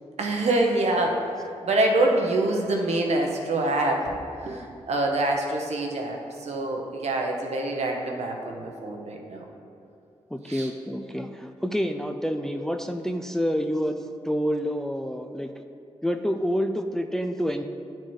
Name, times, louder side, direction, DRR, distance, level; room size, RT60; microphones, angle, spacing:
voice 1, 0.2-9.4 10.5-10.7, right 2 dB, 70° right, 1 dB, 0.9 m, -26 dB
voice 2, 10.3-14.0 14.2-15.5 16.0-17.6, equal, 5° left, 6 dB, 0.4 m, -28 dB
9.6 x 4.3 x 3.1 m, 2.5 s
supercardioid pair, 45°, 12 cm